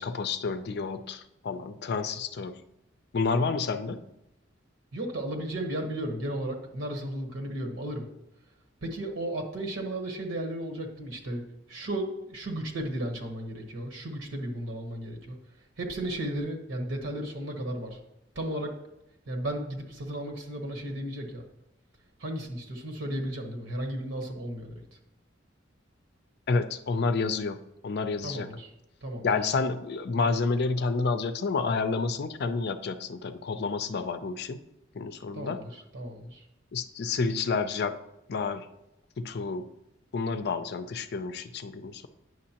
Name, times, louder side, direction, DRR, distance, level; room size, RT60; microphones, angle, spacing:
voice 1, 0.0-2.6 3.1-4.0 26.5-27.6 27.8-28.5 29.2-34.6 35.0-35.6 36.7-37.9 38.3-38.7 39.2-39.7 40.1-42.1, left 4 dB, 55° left, 10 dB, 0.4 m, -29 dB
voice 2, 4.9-8.1 8.8-11.4 11.7-15.4 15.8-18.0 18.3-18.7 19.3-21.4 22.2-24.8 28.2-28.7 29.0-29.3 35.3-36.4, right 1 dB, 70° right, 3 dB, 1.1 m, -34 dB
9.4 x 6.2 x 2.9 m, 0.87 s
head